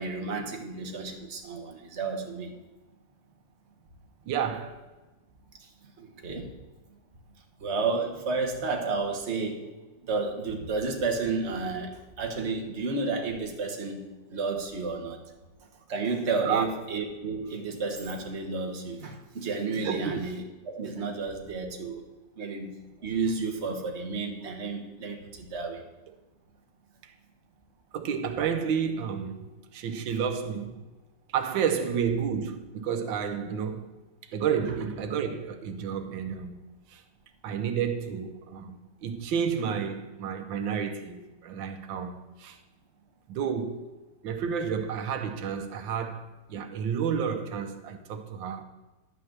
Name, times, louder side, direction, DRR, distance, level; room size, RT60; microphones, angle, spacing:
voice 1, 0.0-2.6 5.6-6.5 7.6-9.7 10.0-15.2 15.9-22.0 22.4-22.7 23.0-25.8, right 4 dB, 40° right, 1.5 m, -32 dB
voice 2, 4.2-4.8 16.4-16.7 19.9-20.2 27.0-27.1 27.9-30.8 31.3-33.9 34.3-36.6 36.9-37.0 37.4-42.6 43.3-43.9 44.2-48.6, right 7 dB, 85° right, 1.5 m, -31 dB
11.5 x 5.9 x 7.4 m
omnidirectional pair, 2.0 m